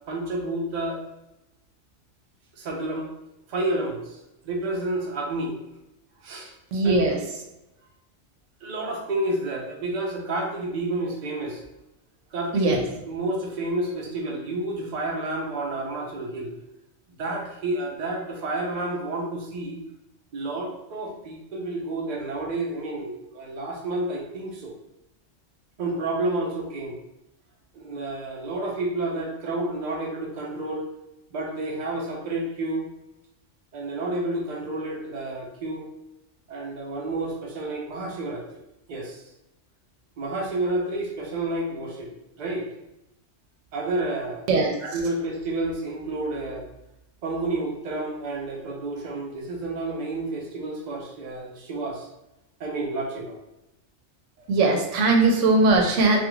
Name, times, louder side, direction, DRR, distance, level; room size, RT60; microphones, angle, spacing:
voice 1, 0.1-1.0 2.6-3.1 3.5-4.2 4.4-5.6 6.2-6.5 6.8-7.0 8.6-11.6 12.3-12.8 13.1-16.5 17.1-19.8 20.3-24.8 25.8-27.0 27.7-30.9 31.3-32.9 33.7-35.9 36.5-38.5 38.9-39.2 40.2-42.1 42.4-42.7 43.7-44.4 44.8-46.7 47.2-52.1 52.6-53.4, right 2 dB, 50° right, -1 dB, 0.6 m, -30 dB
voice 2, 6.7-7.2 12.5-12.8 44.5-44.7 54.5-56.2, right 3 dB, 90° right, 2 dB, 0.9 m, -20 dB
2.4 x 2.4 x 3.0 m, 0.92 s
omnidirectional pair, 1.2 m